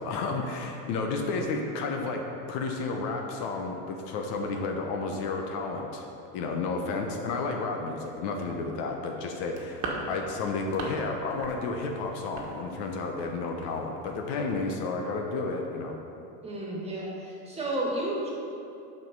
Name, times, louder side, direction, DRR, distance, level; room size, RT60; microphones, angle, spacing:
voice 1, 0.0-6.1 6.3-15.9, left 3 dB, 60° left, 2 dB, 1.0 m, -32 dB
sound 1, 9.4-11.0 11.3-11.6 11.8-13.3 13.6-13.8 14.1-14.2 14.5-14.6, right 3 dB, 40° right, 1.4 m, -38 dB
voice 2, 16.4-18.3, right 1 dB, 15° right, -4 dB, 1.9 m, -32 dB
7.5 x 5.4 x 5.4 m, 2.8 s
supercardioid pair, 120°, 45 cm